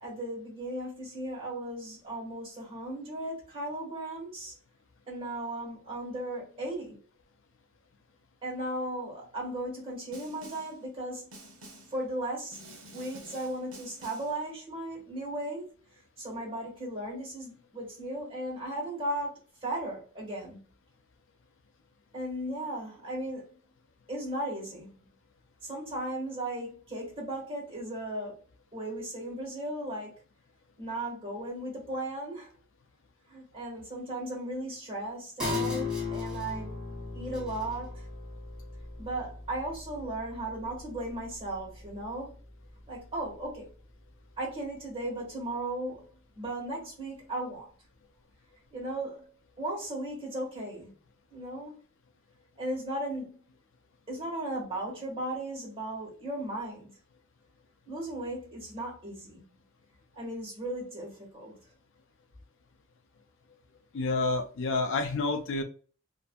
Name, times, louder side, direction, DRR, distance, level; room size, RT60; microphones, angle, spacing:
voice 1, 0.0-4.5 5.1-7.0 8.4-11.3 11.9-12.6 12.9-15.7 16.2-20.6 22.1-23.6 24.1-24.9 25.6-28.4 28.7-30.1 30.8-32.5 33.3-36.8 37.1-38.0 39.0-42.4 42.9-43.7 44.4-47.7 48.7-49.2 49.6-50.9 51.3-51.8 52.6-53.4 54.1-56.9 57.9-59.4 60.1-61.6, right 1 dB, 25° right, 1.4 m, -36 dB
Snare drum, 10.1-10.8 11.3-12.0 12.5-14.4, right 1 dB, 75° right, 0.8 m, -49 dB
sound 1, 35.4-42.4 42.8-42.9, left 4 dB, 5° right, 1.3 m, -37 dB
voice 2, 63.9-65.6, left 3 dB, 65° left, 0.4 m, -29 dB
2.6 x 2.6 x 2.2 m
head